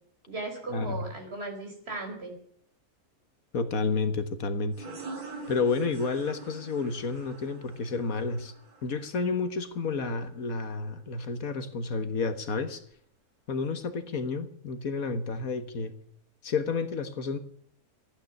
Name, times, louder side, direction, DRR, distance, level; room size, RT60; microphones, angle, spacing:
voice 1, 0.3-2.3, right 2 dB, 45° right, 2 dB, 4.7 m, -37 dB
voice 2, 3.5-4.9 5.5-8.5 8.8-12.8 13.5-15.9 16.4-17.4, left 4 dB, 70° left, 10 dB, 1.7 m, -30 dB
sound 1, 4.7-10.1, right 3 dB, 90° right, 3.2 m, -45 dB
14.5 x 9.2 x 9.6 m, 0.62 s
omnidirectional pair, 1.6 m